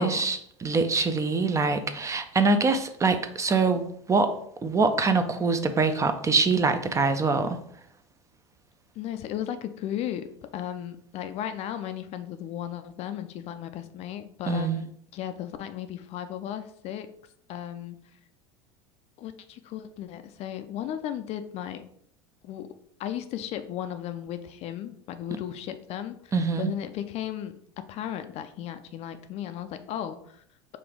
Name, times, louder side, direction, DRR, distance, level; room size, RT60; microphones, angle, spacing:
voice 1, 0.0-4.3 4.6-7.6 14.5-14.8 26.3-26.7, right 4 dB, 20° right, 9 dB, 0.5 m, -24 dB
voice 2, 8.9-14.9 15.1-17.1 17.5-18.0 19.2-21.8 22.4-22.7 23.0-30.4, left 10 dB, 40° left, 9 dB, 0.4 m, -35 dB
5.1 x 2.5 x 3.6 m, 0.66 s
hypercardioid pair, 80°, 16 cm